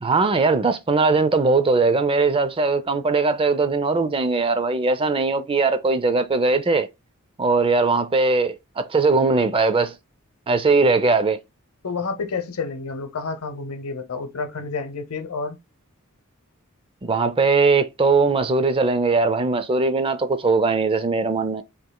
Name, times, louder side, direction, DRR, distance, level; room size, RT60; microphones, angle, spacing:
voice 1, 0.0-6.9 7.4-10.0 10.5-11.4 17.0-21.6, right 3 dB, 25° right, 0.4 m, -20 dB
voice 2, 11.8-15.6, left 4 dB, 70° left, 0.8 m, -29 dB
5.3 x 3.0 x 2.2 m
head